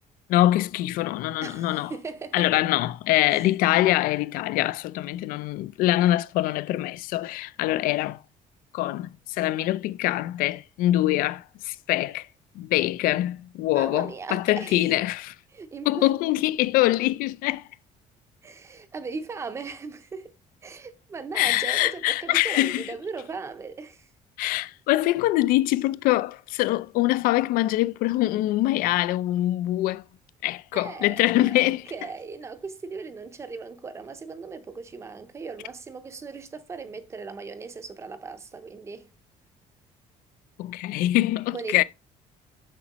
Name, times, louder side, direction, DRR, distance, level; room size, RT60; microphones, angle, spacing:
voice 1, 0.3-1.9 2.3-8.2 8.7-12.3 12.6-15.3 15.9-17.7 21.3-22.9 24.4-30.0 30.4-31.8 40.6-41.8, left 16 dB, 80° left, 0.4 m, -24 dB
voice 2, 1.4-2.6 3.3-3.5 13.7-15.0 15.5-16.1 18.4-20.3 20.6-24.1 30.7-39.1 41.5-41.8, right 4 dB, 20° right, 0.6 m, -38 dB
7.5 x 6.1 x 2.9 m
cardioid pair, 180°, 14 cm